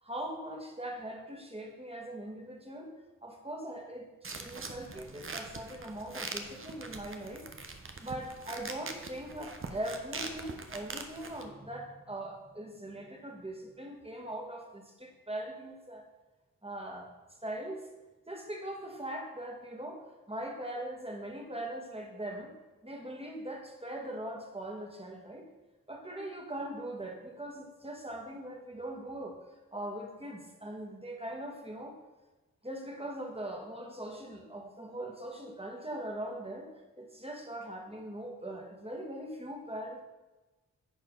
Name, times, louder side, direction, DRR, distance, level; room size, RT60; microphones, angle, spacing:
voice 1, 0.0-2.9 3.2-4.1 4.4-7.5 8.0-16.1 16.6-17.1 17.4-17.9 18.3-22.5 22.8-25.5 25.9-29.4 29.7-32.0 32.6-36.7 37.0-40.0, right 1 dB, 15° right, 1 dB, 1.8 m, -41 dB
sound 1, 4.2-11.5, right 3 dB, 35° right, 1.0 m, -43 dB
10.5 x 4.4 x 3.9 m, 1.1 s
supercardioid pair, 40°, 36 cm